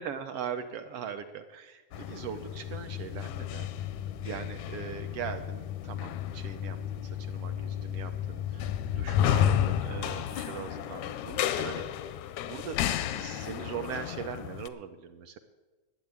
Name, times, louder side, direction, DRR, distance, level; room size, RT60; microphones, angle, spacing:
voice 1, 0.0-3.7 4.2-12.0 12.4-12.8 13.1-15.4, right 7 dB, 75° right, 8 dB, 1.4 m, -40 dB
sound 1, 1.9-14.7, left 10 dB, 90° left, 2.1 m, -32 dB
12.0 x 7.8 x 9.5 m, 1.2 s
omnidirectional pair, 3.3 m